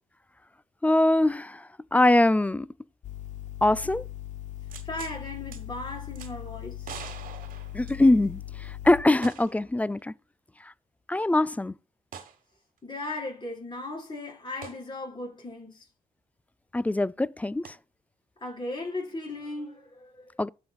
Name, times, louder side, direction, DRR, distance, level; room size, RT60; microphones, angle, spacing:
voice 1, 0.8-2.7 3.6-4.0 7.7-10.1 11.1-11.7 16.7-17.7 20.4-20.5, left 2 dB, 10° left, 0.3 m, -23 dB
sound 1, 3.0-9.0, left 12 dB, 55° left, 0.6 m, -39 dB
sound 2, 4.7-5.2 5.5-5.6 6.2-6.3 6.8-8.4 9.2-9.7 10.0-10.1 12.1-12.4 14.6-14.8 17.6-17.7, right 7 dB, 65° right, 1.3 m, -43 dB
voice 2, 4.8-6.9 12.8-15.9 18.4-20.3, left 2 dB, 30° left, 4.4 m, -37 dB
12.5 x 5.3 x 2.3 m
supercardioid pair, 65°, 15 cm